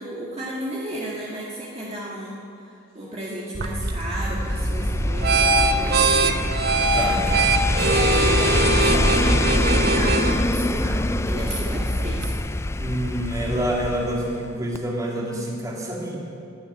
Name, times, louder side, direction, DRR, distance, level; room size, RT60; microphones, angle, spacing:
voice 1, 0.0-6.4 7.7-12.3, right 1 dB, 35° right, -6 dB, 1.9 m, -33 dB
sound 1, 3.5-12.4, right 3 dB, 55° right, 1.0 m, -23 dB
sound 2, 4.1-14.5 14.7-14.8, left 2 dB, 15° left, 0.4 m, -25 dB
voice 2, 6.9-7.4 12.8-16.3, right 1 dB, 20° right, -3 dB, 2.6 m, -27 dB
12.0 x 11.0 x 9.2 m, 2.4 s
head